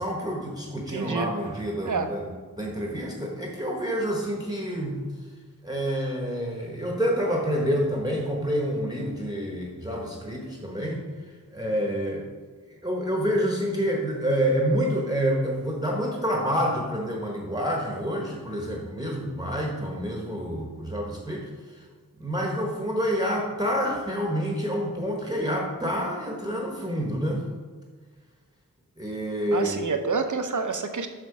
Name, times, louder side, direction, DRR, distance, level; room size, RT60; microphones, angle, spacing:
voice 1, 0.0-2.3 2.6-5.0 5.6-11.0 11.5-12.3 12.8-21.9 22.2-27.4 29.0-29.8, equal, 10° right, -1 dB, 1.1 m, -28 dB
voice 2, 0.9-1.3 1.8-2.1 29.5-31.1, right 5 dB, 60° right, 7 dB, 0.8 m, -28 dB
6.6 x 6.1 x 4.7 m, 1.5 s
wide cardioid pair, 70°, 34 cm